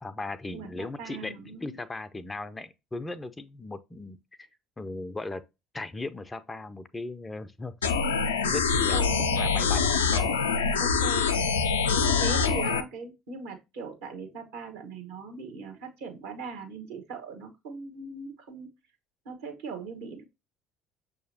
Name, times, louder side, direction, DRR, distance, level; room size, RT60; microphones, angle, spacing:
voice 1, 0.0-1.3 1.6-4.5 4.8-5.4 5.7-7.7 8.5-10.4, left 2 dB, 20° left, 0.4 m, -37 dB
voice 2, 0.5-1.8 8.9-9.4 10.8-11.4 11.8-18.7 19.2-20.2, right 4 dB, 65° right, 1.1 m, -39 dB
sound 1, 7.8-12.8, left 5 dB, 75° left, 0.4 m, -25 dB
6.2 x 2.8 x 2.7 m
figure-of-eight pair, 60°, 0 cm